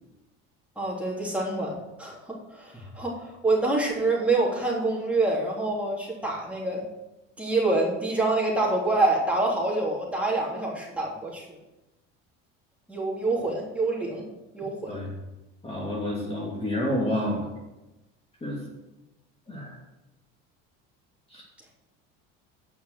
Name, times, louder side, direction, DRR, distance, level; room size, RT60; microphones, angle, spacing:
voice 1, 0.7-6.8 7.4-11.5 12.9-14.2 14.5-14.9, right 2 dB, 5° right, -4 dB, 3.4 m, -26 dB
voice 2, 15.6-17.5 18.4-18.6 19.5-19.8 21.3-21.4, left 1 dB, 20° left, -4 dB, 2.6 m, -29 dB
9.1 x 6.2 x 7.7 m, 1.0 s
supercardioid pair, 110°, 30 cm